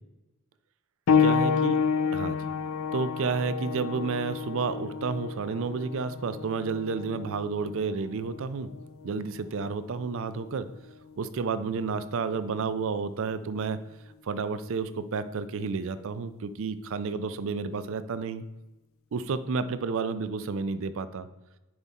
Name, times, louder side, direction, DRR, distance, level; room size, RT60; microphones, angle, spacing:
sound 1, 1.1-11.3 12.2-12.4 13.1-13.2, left 6 dB, 65° left, 0.4 m, -30 dB
voice 1, 1.2-1.8 2.1-2.4 2.9-8.7 9.0-10.7 11.2-13.8 14.2-18.4 19.1-21.3, right 5 dB, 65° right, 13 dB, 0.4 m, -31 dB
9.5 x 4.1 x 3.6 m, 1.0 s
head